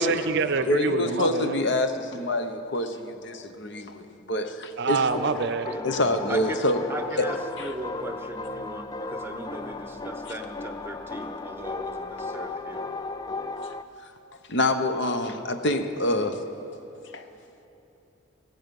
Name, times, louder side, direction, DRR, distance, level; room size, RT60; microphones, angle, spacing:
voice 1, 0.0-1.6 4.8-5.7 6.0-6.4, right 4 dB, 55° right, 12 dB, 0.5 m, -26 dB
voice 2, 0.6-5.1 5.8-6.8 7.2-7.3 7.6-7.7 10.2-10.3 14.5-16.5 17.1-17.2, left 1 dB, 55° left, 8 dB, 0.9 m, -26 dB
sound 1, 5.1-13.8, left 3 dB, 20° left, 0.4 m, -35 dB
voice 3, 6.3-6.6 6.9-12.8, right 1 dB, 10° right, 6 dB, 0.9 m, -38 dB
17.0 x 15.5 x 5.4 m, 3.0 s
head